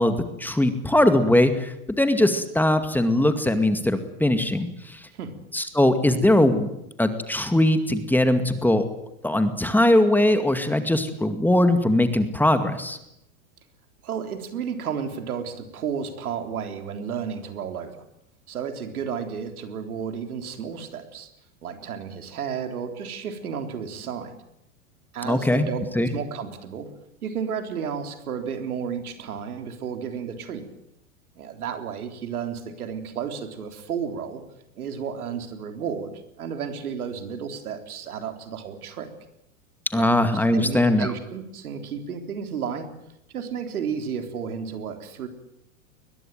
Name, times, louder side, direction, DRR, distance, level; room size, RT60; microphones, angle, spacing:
voice 1, 0.0-5.0 5.5-6.7 7.0-8.8 9.2-13.0 25.2-25.7 26.0-26.1 39.9-41.1, left 1 dB, 5° left, 9 dB, 2.2 m, -21 dB
voice 2, 14.0-18.0 18.5-21.3 21.6-24.3 25.1-26.9 27.2-30.6 31.4-34.4 34.8-39.1 39.9-42.9 43.3-45.3, right 7 dB, 85° right, 7 dB, 3.7 m, -32 dB
21.5 x 21.0 x 9.2 m, 0.83 s
hypercardioid pair, 115°, 43 cm